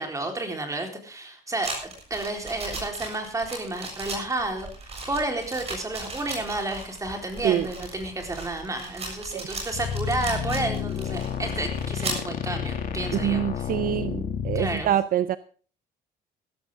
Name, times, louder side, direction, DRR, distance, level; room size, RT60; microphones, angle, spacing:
voice 1, 0.0-4.7 5.1-13.6 14.5-14.9, right 2 dB, 20° right, 4 dB, 4.1 m, -31 dB
sound 1, 1.6-12.3, right 3 dB, 35° right, 7.0 m, -37 dB
sound 2, 9.7-14.8, left 8 dB, 55° left, 2.5 m, -30 dB
voice 2, 13.2-15.4, right 11 dB, 55° right, 15 dB, 0.6 m, -25 dB
16.0 x 14.0 x 3.7 m, 0.41 s
cardioid pair, 110°, 17 cm